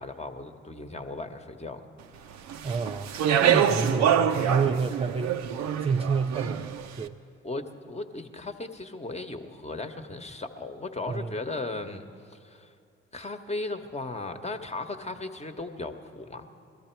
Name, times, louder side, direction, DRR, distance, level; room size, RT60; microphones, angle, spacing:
voice 1, 0.0-1.8 7.4-12.7 13.1-16.5, left 2 dB, 20° left, 6 dB, 1.2 m, -36 dB
Speech, 2.5-6.8, right 9 dB, 65° right, 0.7 m, -25 dB
voice 2, 2.6-3.1 3.4-5.5 5.8-7.2 11.1-11.3, right 5 dB, 20° right, 6 dB, 0.4 m, -29 dB
21.0 x 13.5 x 4.6 m, 2.4 s
hypercardioid pair, 50°, 30 cm